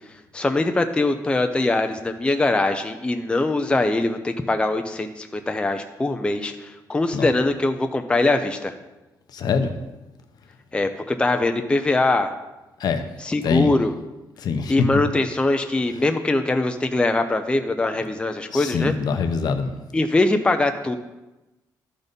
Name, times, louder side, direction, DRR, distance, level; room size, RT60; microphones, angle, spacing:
voice 1, 0.3-8.7 10.7-12.3 13.2-13.9 14.7-18.9 19.9-21.0, left 2 dB, 15° left, 6 dB, 0.5 m, -22 dB
voice 2, 9.3-9.7 12.8-13.0 13.4-13.7 14.4-14.9 18.5-19.7, left 5 dB, 65° left, 7 dB, 0.8 m, -23 dB
12.0 x 4.1 x 5.2 m, 1.0 s
cardioid pair, 125°, 7 cm